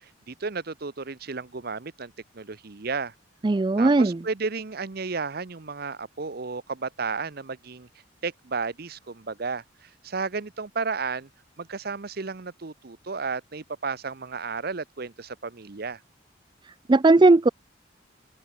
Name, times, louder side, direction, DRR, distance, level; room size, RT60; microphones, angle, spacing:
voice 1, 0.0-3.1 3.8-7.9 8.2-11.3 11.6-16.0, right 4 dB, 50° right, 0.8 m, -33 dB
voice 2, 3.4-4.2 16.9-17.5, right 2 dB, 25° right, 0.4 m, -17 dB
head